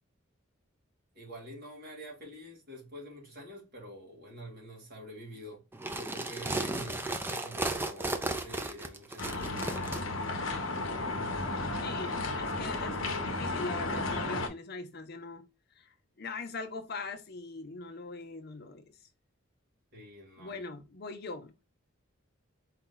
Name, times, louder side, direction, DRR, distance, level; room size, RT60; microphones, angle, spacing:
voice 1, 1.1-5.6 5.9-10.0 19.9-20.6, equal, 45° right, 2.1 m, -47 dB
sound 1, 5.7-10.0, right 2 dB, 10° right, 0.4 m, -34 dB
sound 2, 9.2-14.5, left 2 dB, 65° left, 0.9 m, -33 dB
voice 2, 11.8-15.4 15.8-18.9 20.4-21.5, left 3 dB, 45° left, 0.6 m, -41 dB
4.6 x 2.8 x 3.8 m
head